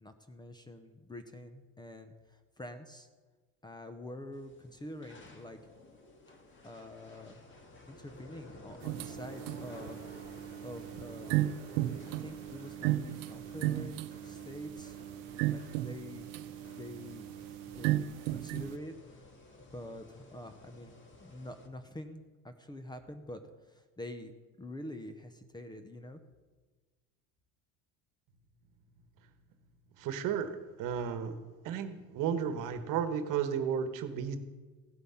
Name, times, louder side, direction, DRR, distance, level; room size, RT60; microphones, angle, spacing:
voice 1, 0.0-3.1 3.6-5.6 6.6-7.4 7.9-10.0 10.6-11.4 11.8-15.0 15.5-16.3 16.7-17.3 17.7-19.3 19.7-20.9 21.2-23.4 23.7-24.3 24.6-26.2, left 1 dB, 10° left, 8 dB, 0.8 m, -46 dB
sound 1, 4.3-21.7, left 2 dB, 30° left, 1.8 m, -53 dB
sound 2, 8.8-18.8, right 14 dB, 80° right, 0.6 m, -35 dB
voice 2, 30.0-31.4 31.6-34.4, right 7 dB, 60° right, 10 dB, 1.3 m, -33 dB
16.0 x 8.1 x 5.7 m, 1.3 s
supercardioid pair, 120°, 37 cm